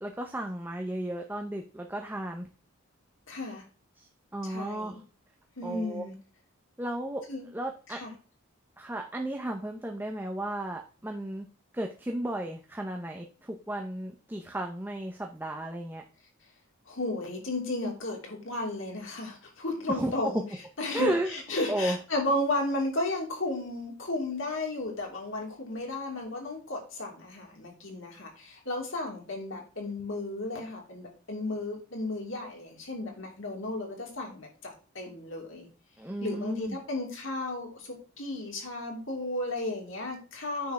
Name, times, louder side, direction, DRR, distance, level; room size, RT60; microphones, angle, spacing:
voice 1, 0.0-2.5 4.0-4.9 5.6-6.0 6.8-7.2 7.5-8.0 8.8-11.5 11.7-16.0 19.9-20.1 20.9-21.3 21.7-22.0 36.0-36.8, right 1 dB, 10° right, 2 dB, 0.6 m, -34 dB
voice 2, 3.3-3.6 4.4-5.0 5.6-6.1 7.3-7.5 7.9-8.1 16.9-20.4 20.8-35.6 36.2-40.7, left 2 dB, 60° left, 0 dB, 3.3 m, -34 dB
9.4 x 4.5 x 5.9 m, 0.37 s
head